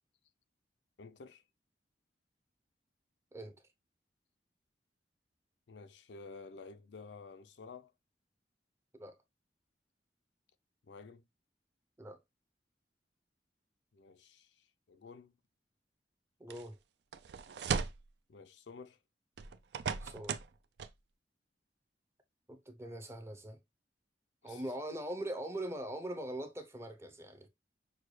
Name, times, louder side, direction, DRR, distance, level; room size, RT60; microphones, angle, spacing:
voice 1, 1.0-1.4 5.7-7.9 10.8-11.2 13.9-15.3 18.3-19.0 24.4-24.6, left 4 dB, 85° left, 0.5 m, -52 dB
voice 2, 16.4-16.8 20.0-20.4 22.5-23.6 24.4-27.5, right 1 dB, 15° right, 0.6 m, -42 dB
sound 1, 16.5-16.6 17.1-18.1 19.4-20.5 20.8-20.9, right 6 dB, 70° right, 0.4 m, -37 dB
6.3 x 2.2 x 3.1 m
head